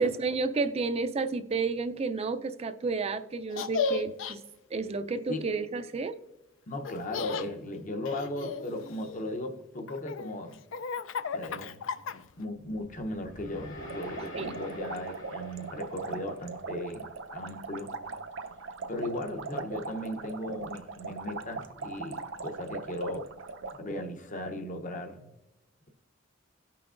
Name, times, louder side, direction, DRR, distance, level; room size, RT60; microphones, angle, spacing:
voice 1, 0.0-4.4 4.7-6.1 14.4-14.6, right 4 dB, 30° right, 0.4 m, -31 dB
Laughter, 3.5-4.3 6.8-7.5 8.0-9.3 9.9-12.4, left 5 dB, 70° left, 0.4 m, -34 dB
voice 2, 6.7-10.6 11.3-11.8 12.4-17.9 18.9-23.3 23.8-25.3, left 1 dB, 40° left, 0.8 m, -37 dB
sound 1, 12.5-16.8, left 1 dB, 85° left, 2.0 m, -46 dB
sound 2, 13.8-23.8, right 4 dB, 70° right, 0.6 m, -40 dB
17.5 x 5.8 x 2.5 m
head